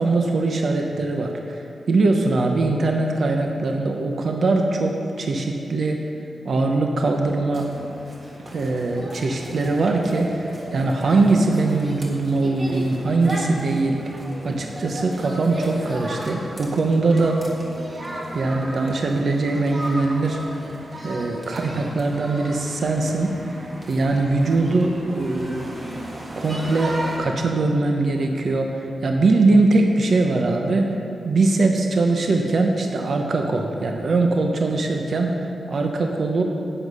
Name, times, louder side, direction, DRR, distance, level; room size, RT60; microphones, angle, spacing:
voice 1, 0.0-6.0 6.4-7.7 8.5-14.2 14.4-17.4 18.3-20.7 21.0-25.8 26.4-31.0 31.2-36.4, right 3 dB, 50° right, 3 dB, 0.8 m, -21 dB
sound 1, 7.5-27.2, right 1 dB, 30° right, 1.6 m, -35 dB
11.0 x 8.1 x 5.5 m, 2.8 s
wide cardioid pair, 150°, 0 cm